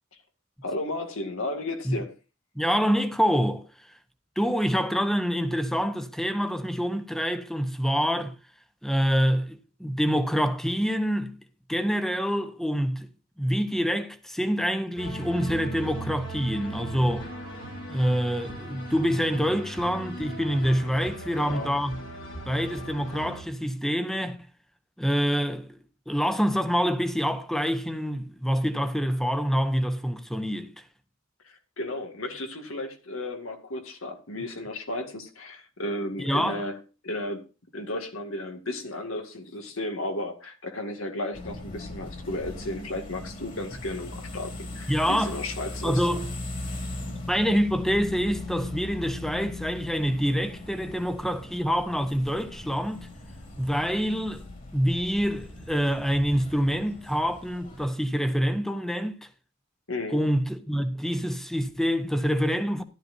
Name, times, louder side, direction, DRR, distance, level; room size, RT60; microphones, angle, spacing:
voice 1, 0.6-2.1 21.4-21.7 31.8-36.8 37.0-37.4 37.7-46.0 59.9-60.3, left 1 dB, 85° left, 2.1 m, -34 dB
voice 2, 2.5-3.9 4.4-8.3 8.8-11.4 11.7-13.1 13.4-17.3 17.9-22.0 22.5-24.4 25.0-25.8 26.1-30.8 36.2-36.6 44.9-45.4 45.8-46.3 47.3-53.1 53.6-54.4 54.7-59.3 60.1-62.8, equal, ahead, 0.9 m, -26 dB
sound 1, 15.0-23.4, right 1 dB, 65° left, 3.4 m, -38 dB
sound 2, 41.3-57.9, left 2 dB, 40° left, 2.8 m, -39 dB
14.0 x 11.5 x 2.7 m
head